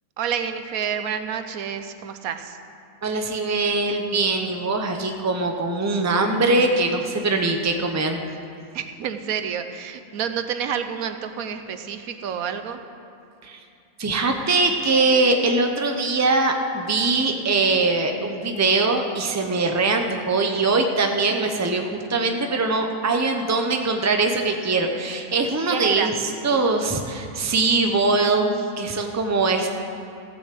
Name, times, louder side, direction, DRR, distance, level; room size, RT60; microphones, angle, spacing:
voice 1, 0.2-2.6 8.7-12.8 25.7-26.1, right 8 dB, 90° right, 8 dB, 1.2 m, -29 dB
voice 2, 3.0-8.2 13.4-13.6 14.0-26.1 26.4-29.7, right 3 dB, 15° right, 4 dB, 0.7 m, -22 dB
15.5 x 7.0 x 7.7 m, 2.5 s
omnidirectional pair, 1.5 m